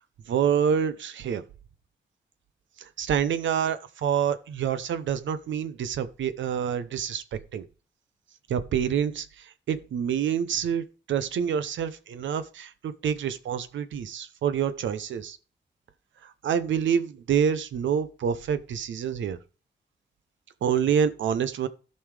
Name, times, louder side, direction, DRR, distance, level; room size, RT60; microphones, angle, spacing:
voice 1, 0.3-1.4 2.8-7.6 8.5-15.4 16.2-19.4 20.6-21.7, right 8 dB, 85° right, 0.7 m, -27 dB
14.5 x 5.4 x 3.3 m
cardioid pair, 55°, 19 cm